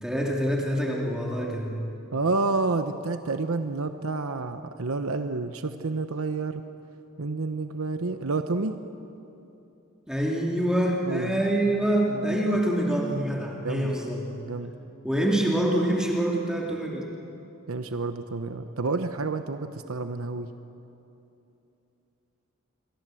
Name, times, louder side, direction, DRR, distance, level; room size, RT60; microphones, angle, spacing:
voice 1, 0.0-1.8 10.1-14.4 15.0-17.0, right 1 dB, 5° right, -2 dB, 2.6 m, -26 dB
voice 2, 2.1-6.6 7.2-8.8 11.1-11.4 11.7-11.8 12.1-12.3 13.6-13.9 14.5-14.7 17.7-20.5, right 3 dB, 75° right, 8 dB, 1.0 m, -29 dB
28.0 x 24.0 x 7.8 m, 2.9 s
head